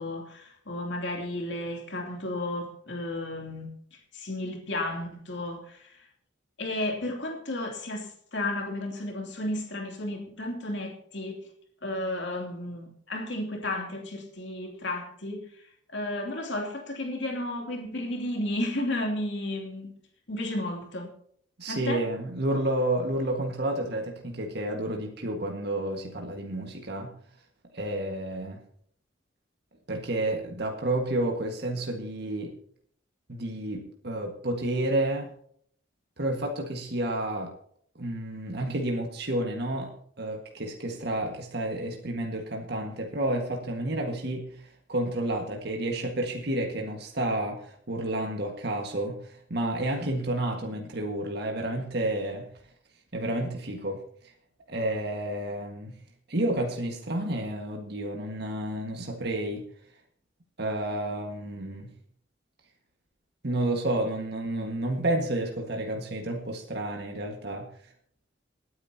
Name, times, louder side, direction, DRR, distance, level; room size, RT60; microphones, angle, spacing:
voice 1, 0.0-6.0 6.6-11.5 11.8-15.4 15.9-19.9 20.3-21.1 21.7-22.0, left 1 dB, 65° left, 1 dB, 2.9 m, -33 dB
voice 2, 21.6-27.2 27.7-28.6 29.9-32.5 33.3-35.3 36.2-37.5 38.0-52.5 53.1-54.0 54.7-56.0 56.3-59.7 60.6-61.9 63.4-67.7, right 1 dB, 60° right, 2 dB, 1.7 m, -30 dB
27.0 x 9.5 x 2.8 m, 0.63 s
head